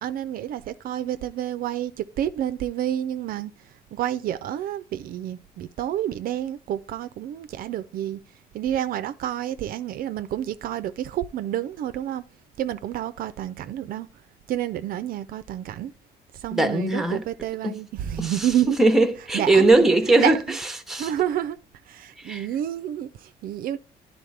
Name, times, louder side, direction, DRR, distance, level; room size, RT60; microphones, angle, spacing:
voice 1, 0.0-3.5 3.9-8.2 8.5-12.2 12.6-14.1 14.5-15.9 16.3-18.8 19.3-19.7 20.2-20.4 20.9-21.6 21.9-23.8, right 11 dB, 60° right, 0.4 m, -29 dB
voice 2, 16.5-17.2 17.6-17.8 18.2-18.5 18.8-20.4 20.9-21.1 22.2-22.5, right 2 dB, ahead, 0.8 m, -20 dB
10.0 x 4.0 x 3.3 m
cardioid pair, 110°, 17 cm